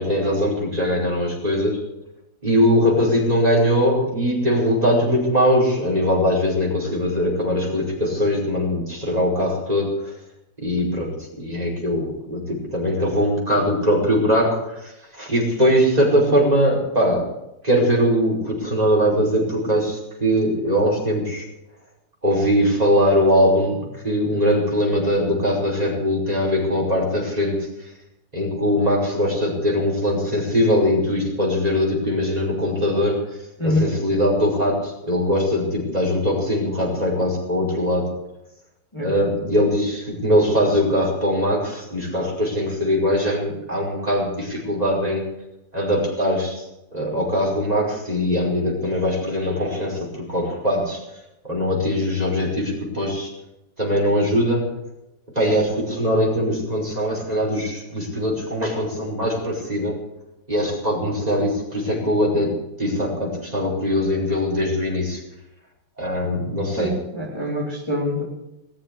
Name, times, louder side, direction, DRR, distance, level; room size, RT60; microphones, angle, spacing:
voice 1, 0.0-1.8 2.4-10.1 10.6-17.3 17.6-21.4 22.2-27.9 28.3-33.4 33.6-38.1 39.0-45.3 45.7-46.6 46.9-51.0 51.4-53.3 53.8-54.8 55.4-59.9 60.5-65.2 66.0-67.0, equal, 20° right, -2 dB, 5.1 m, -21 dB
voice 2, 66.8-68.2, left 1 dB, 15° left, -5 dB, 3.4 m, -24 dB
19.5 x 7.3 x 9.7 m, 0.90 s
omnidirectional pair, 2.0 m